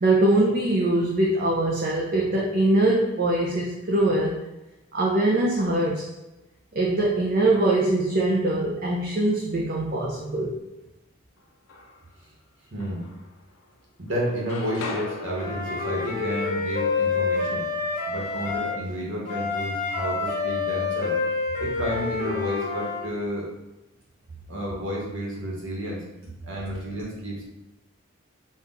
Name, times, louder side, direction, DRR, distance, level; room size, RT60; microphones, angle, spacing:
voice 1, 0.0-4.4 4.9-6.0 6.7-10.6, right 2 dB, 45° right, -3 dB, 0.5 m, -22 dB
sound 1, 11.4-12.2 12.8-13.8 14.1-18.0, left 3 dB, 80° left, 0.6 m, -40 dB
voice 2, 12.7-13.1 14.0-17.7 18.1-21.2 21.6-23.5 24.5-26.1 26.4-27.4, equal, 70° right, -4 dB, 1.2 m, -31 dB
Wind instrument woodwind instrument, 15.4-18.8 19.3-23.0, left 4 dB, 35° left, 1.0 m, -28 dB
4.2 x 2.4 x 3.9 m, 0.97 s
head